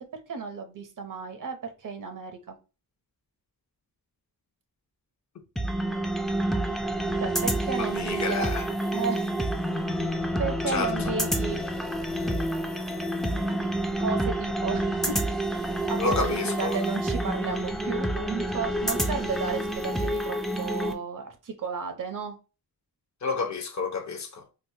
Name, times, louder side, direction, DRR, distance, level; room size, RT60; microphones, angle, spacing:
voice 1, 0.1-2.6 7.2-8.5 8.9-9.3 10.4-11.6 13.2-13.7 14.0-15.4 15.9-22.4, right 5 dB, 55° right, 0.7 m, -33 dB
sound 1, 5.6-20.9, right 1 dB, ahead, 0.3 m, -28 dB
voice 2, 7.8-8.7 10.7-11.1 16.0-16.8 23.2-24.5, left 4 dB, 45° left, 0.6 m, -30 dB
4.6 x 2.0 x 2.7 m
wide cardioid pair, 150°, 39 cm